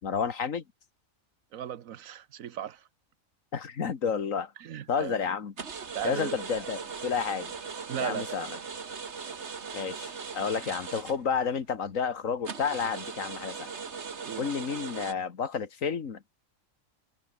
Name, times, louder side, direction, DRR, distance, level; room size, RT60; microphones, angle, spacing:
voice 1, 0.0-0.6 3.5-4.5 4.9-5.5 6.0-7.5 8.0-8.6 9.7-13.7 14.4-16.3, left 6 dB, 80° left, 2.0 m, -31 dB
voice 2, 1.5-2.8 4.6-5.2 5.9-6.4 7.9-8.4 14.2-14.5, right 10 dB, 90° right, 1.3 m, -36 dB
sound 1, 5.6-11.6 12.0-12.1 12.4-15.1, right 5 dB, 60° right, 1.8 m, -39 dB
omnidirectional pair, 1.4 m